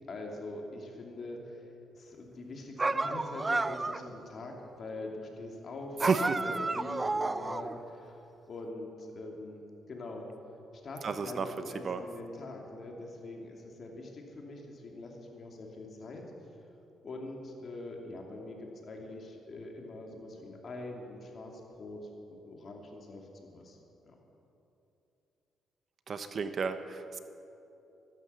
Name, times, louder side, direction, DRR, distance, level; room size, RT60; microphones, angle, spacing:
voice 1, 0.1-1.7 1.9-9.6 9.9-10.3 10.8-16.2 17.0-23.8 24.0-24.1, left 2 dB, 50° left, 1 dB, 2.7 m, -44 dB
sound 1, 2.8-4.1 6.0-7.8, right 3 dB, 20° right, 0.5 m, -31 dB
voice 2, 6.0-6.4 11.0-11.5 11.8-12.0 26.1-27.2, right 5 dB, 45° right, 10 dB, 0.8 m, -32 dB
14.5 x 12.0 x 6.9 m, 3.0 s
cardioid pair, 90°, 0 cm